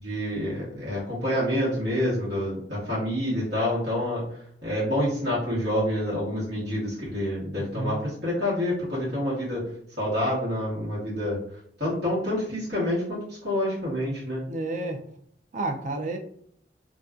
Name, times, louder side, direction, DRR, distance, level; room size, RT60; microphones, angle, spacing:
voice 1, 0.0-4.3 4.6-9.7 10.0-11.4 11.8-14.4, left 1 dB, 70° right, -8 dB, 1.1 m, -27 dB
voice 2, 7.5-8.0 14.5-15.0 15.5-16.2, right 2 dB, 45° right, 4 dB, 0.3 m, -31 dB
2.5 x 2.2 x 2.3 m, 0.65 s
head